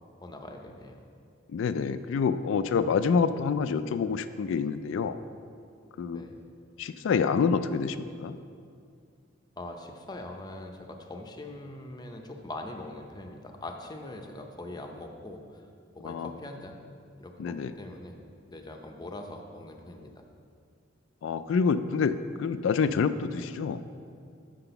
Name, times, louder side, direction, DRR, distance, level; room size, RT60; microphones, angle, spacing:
voice 1, 0.2-1.0 6.1-6.4 9.6-15.6 15.9-16.8 17.2-18.2 18.5-20.1, left 2 dB, 20° left, 3 dB, 0.6 m, -42 dB
voice 2, 1.5-5.2 6.0-6.2 6.8-8.4 16.0-16.3 17.4-17.7 21.2-23.8, left 5 dB, 75° left, 13 dB, 0.3 m, -27 dB
5.9 x 5.8 x 6.8 m, 2.3 s
head